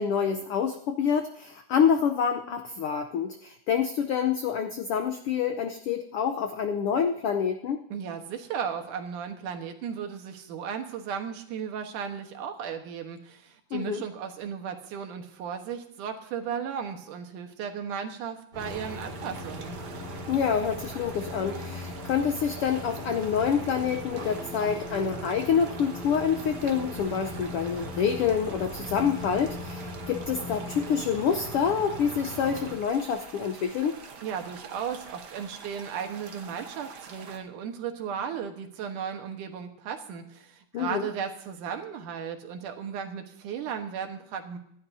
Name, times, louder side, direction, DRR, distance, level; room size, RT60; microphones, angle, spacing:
voice 1, 0.0-7.8 13.7-14.0 20.3-33.9 40.7-41.1, left 7 dB, 85° left, 6 dB, 1.2 m, -27 dB
voice 2, 7.9-19.8 34.2-44.6, right 7 dB, 85° right, 5 dB, 2.8 m, -35 dB
sound 1, 18.5-32.8, equal, 30° right, 3.8 m, -39 dB
sound 2, 18.6-37.4, right 5 dB, 60° right, 1.1 m, -46 dB
26.0 x 11.5 x 2.7 m, 0.72 s
omnidirectional pair, 3.5 m